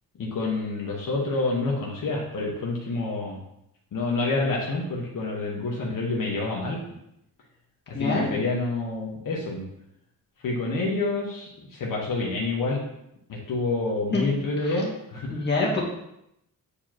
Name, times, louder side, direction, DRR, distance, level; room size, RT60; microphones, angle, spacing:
voice 1, 0.2-3.4 3.9-6.8 7.9-9.7 10.4-12.8 13.3-15.4, left 3 dB, 65° left, -3 dB, 1.3 m, -28 dB
voice 2, 7.9-8.3 14.1-14.2 14.7-14.8 15.3-15.9, left 3 dB, 30° left, -4 dB, 2.0 m, -25 dB
8.3 x 4.9 x 2.9 m, 0.80 s
cardioid pair, 115°, 35 cm